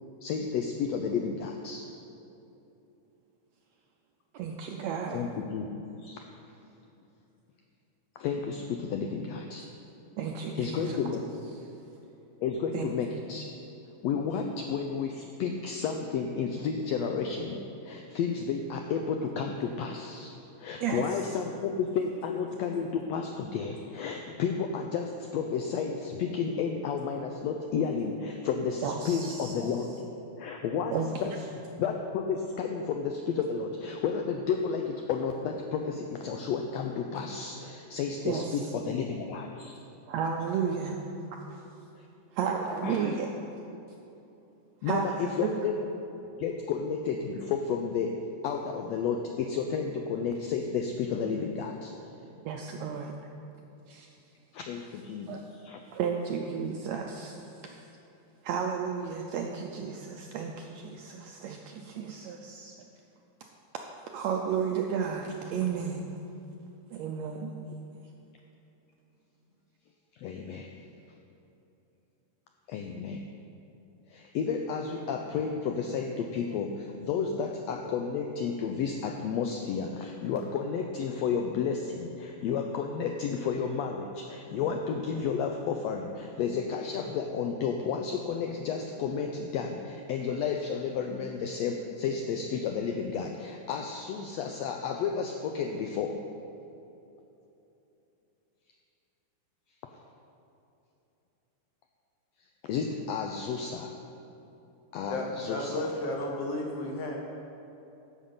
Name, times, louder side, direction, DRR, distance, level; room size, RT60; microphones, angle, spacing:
voice 1, 0.2-1.8 5.1-5.7 6.0-6.2 8.2-9.7 10.5-11.2 12.4-13.5 14.0-29.9 30.4-31.5 31.8-39.8 40.5-40.6 42.0-42.1 42.8-43.1 44.8-45.8 46.4-51.9 54.5-55.8 70.1-70.7 72.7-73.2 74.1-96.2 102.6-103.9 104.9-105.9, left 6 dB, 85° left, 3 dB, 1.5 m, -32 dB
voice 2, 4.3-5.2 10.2-11.0 12.7-12.9 20.8-21.0 28.8-29.7 30.9-31.4 38.2-38.6 40.1-41.0 41.3-41.6 42.3-43.3 44.8-45.5 52.4-53.2 53.9-54.1 55.3-55.4 55.9-57.7 58.4-62.8 64.0-66.1 66.9-67.8, right 6 dB, 80° right, 2 dB, 1.6 m, -33 dB
voice 3, 105.1-107.2, left 2 dB, 65° left, 0 dB, 1.6 m, -33 dB
10.5 x 7.3 x 5.5 m, 2.9 s
omnidirectional pair, 3.6 m